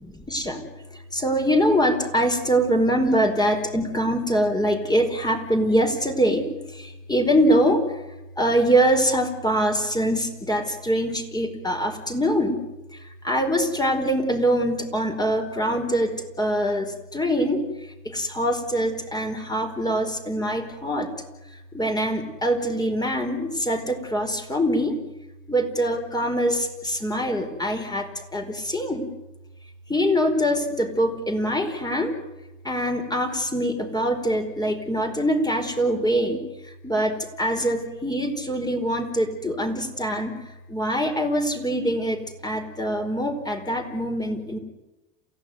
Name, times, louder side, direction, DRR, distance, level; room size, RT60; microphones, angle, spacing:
voice 1, 0.3-0.6 1.1-6.5 6.7-7.8 8.4-12.6 13.2-17.6 18.0-21.1 21.7-25.0 25.5-29.1 29.9-32.1 32.6-36.4 36.8-40.3 40.7-44.6, equal, 10° left, 5 dB, 4.8 m, -23 dB
28.5 x 16.0 x 9.4 m, 1.0 s
supercardioid pair, 105°, 40 cm